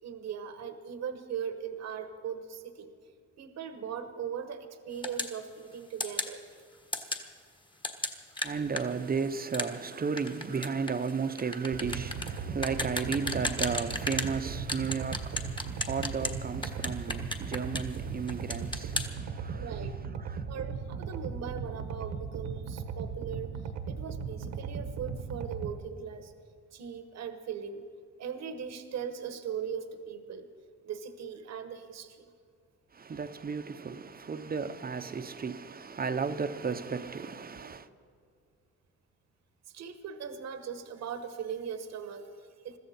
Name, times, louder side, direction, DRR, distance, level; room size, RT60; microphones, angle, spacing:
voice 1, 0.0-2.9 3.4-6.4 19.5-19.9 20.5-23.5 23.9-26.3 26.7-27.8 28.2-30.5 30.8-32.2 39.7-42.8, right 7 dB, 60° right, 1.2 m, -39 dB
sound 1, 5.0-5.4 6.0-6.3 6.9-7.2 7.8-14.3 14.7-16.4 16.6-18.0 18.3-19.1, left 2 dB, 15° left, 1.4 m, -34 dB
voice 2, 8.4-19.7 20.3-20.4 32.9-37.9, right 5 dB, 30° right, 0.8 m, -34 dB
sound 2, 11.7-25.7, right 6 dB, 85° right, 1.4 m, -37 dB
22.0 x 14.0 x 4.3 m
cardioid pair, 90°, 30 cm